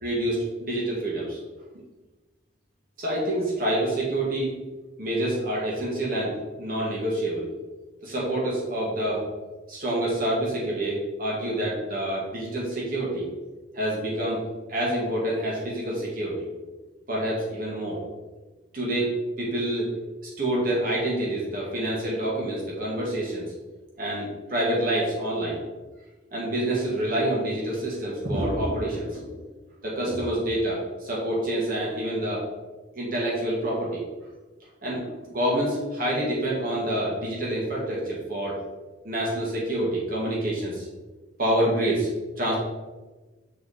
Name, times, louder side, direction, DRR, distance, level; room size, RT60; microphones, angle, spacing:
voice 1, 0.0-1.4 3.0-4.6 5.0-7.5 8.0-9.2 9.7-13.3 13.7-16.5 17.1-18.0 18.7-19.9 20.4-23.4 24.0-25.6 26.3-29.4 29.8-32.4 32.9-34.0 34.8-38.6 39.0-40.9 41.4-42.1 42.4-42.6, right 1 dB, 50° right, -5 dB, 1.7 m, -27 dB
6.7 x 4.6 x 4.1 m, 1.2 s
head